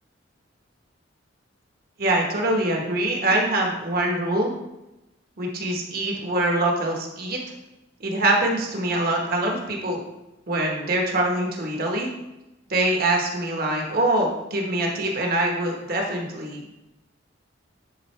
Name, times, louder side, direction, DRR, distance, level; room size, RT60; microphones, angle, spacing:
voice 1, 2.0-4.5 5.4-7.4 8.0-10.0 10.5-12.1 12.7-16.7, right 1 dB, 50° right, 0 dB, 1.3 m, -24 dB
10.0 x 4.1 x 3.3 m, 0.95 s
head